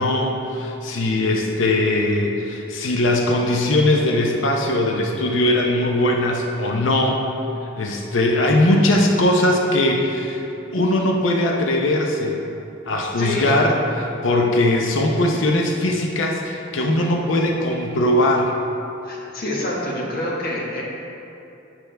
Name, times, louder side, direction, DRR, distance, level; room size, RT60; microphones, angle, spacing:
voice 1, 0.0-7.2 7.8-10.4 10.7-12.4 12.9-13.7 14.2-18.5, left 1 dB, 70° left, 0 dB, 0.7 m, -20 dB
voice 2, 13.2-13.6 19.0-20.8, left 1 dB, 50° left, -4 dB, 1.5 m, -26 dB
9.8 x 6.0 x 3.4 m, 2.8 s
head